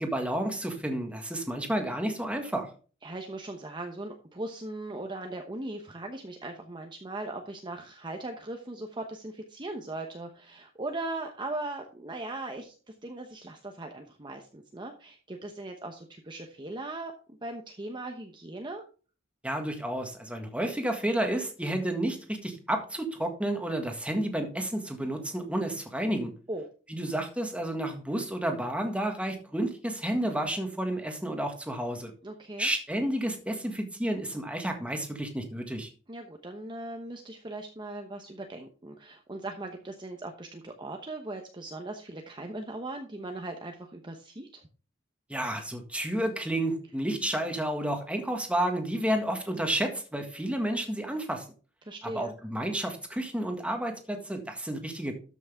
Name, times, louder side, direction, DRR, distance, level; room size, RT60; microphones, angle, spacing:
voice 1, 0.0-2.7 19.4-26.3 26.9-32.1 32.6-35.9 45.3-51.5 52.1-55.1, right 1 dB, 5° right, 4 dB, 1.7 m, -31 dB
voice 2, 3.0-18.8 26.5-26.7 32.2-32.7 36.1-44.6 51.9-52.3, right 2 dB, 25° right, 3 dB, 0.9 m, -39 dB
13.0 x 6.2 x 3.6 m, 0.38 s
head